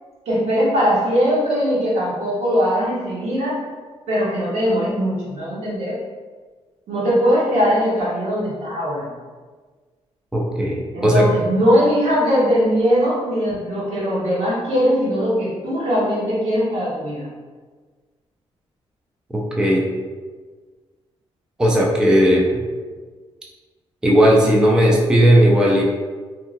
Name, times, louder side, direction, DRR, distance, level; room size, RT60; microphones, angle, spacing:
voice 1, 0.3-3.6 4.1-6.0 6.9-9.1 10.9-17.3, equal, 75° right, -7 dB, 1.1 m, -20 dB
voice 2, 10.3-11.2 19.3-19.9 21.6-22.6 24.0-25.8, equal, 5° right, -2 dB, 0.3 m, -16 dB
2.7 x 2.6 x 2.5 m, 1.5 s
cardioid pair, 135°, 11 cm